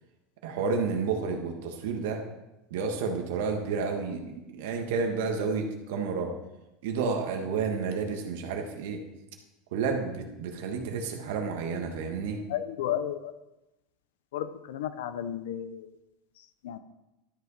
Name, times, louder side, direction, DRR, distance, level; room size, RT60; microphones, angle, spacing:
voice 1, 0.4-2.2 2.7-6.3 6.8-9.0 9.7-12.4, right 5 dB, 75° right, 4 dB, 1.5 m, -30 dB
voice 2, 12.5-13.3 14.3-15.9 16.6-16.8, left 10 dB, 85° left, 12 dB, 0.6 m, -33 dB
12.5 x 5.7 x 4.1 m, 0.97 s
supercardioid pair, 140°, 0 cm